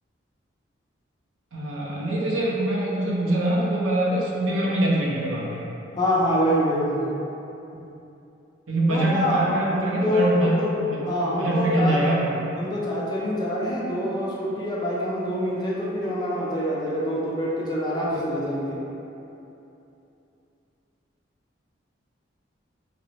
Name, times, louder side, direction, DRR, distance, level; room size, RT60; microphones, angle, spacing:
voice 1, 1.5-5.6 7.9-8.0 8.7-10.5 10.9-11.0 11.3-12.3 18.1-18.2 18.7-18.8, right 1 dB, 90° right, -5 dB, 0.7 m, -24 dB
voice 2, 5.9-7.2 8.9-10.7 11.1-12.0 12.6-18.8, equal, 20° left, -5 dB, 0.4 m, -25 dB
2.9 x 2.0 x 4.1 m, 2.9 s
head